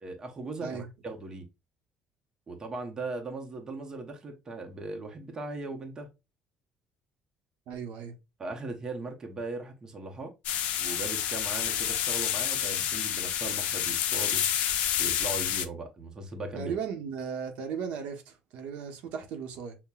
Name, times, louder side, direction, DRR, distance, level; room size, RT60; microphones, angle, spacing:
voice 1, 0.0-1.5 2.5-6.1 8.4-10.3 10.8-14.4 15.0-16.7, right 2 dB, 25° right, 0.7 m, -38 dB
voice 2, 7.7-8.1 16.5-19.8, right 7 dB, 75° right, 0.8 m, -36 dB
sound 1, 10.4-15.6, left 10 dB, 75° left, 0.4 m, -29 dB
5.6 x 2.1 x 2.2 m
cardioid pair, 130°, 2 cm